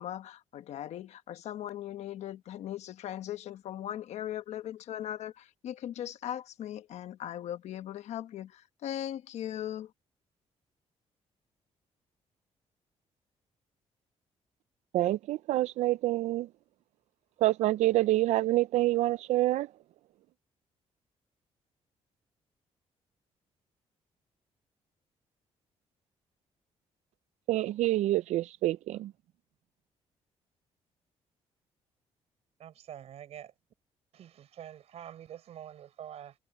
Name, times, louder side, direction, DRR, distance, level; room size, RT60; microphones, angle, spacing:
voice 1, 0.0-9.9, left 11 dB, 75° left, 1.1 m, -39 dB
voice 2, 14.9-16.5 17.4-19.7 27.5-29.1, right 16 dB, 85° right, 0.4 m, -27 dB
voice 3, 32.6-33.5 34.1-36.4, right 10 dB, 65° right, 4.5 m, -46 dB
cardioid pair, 135°, 12 cm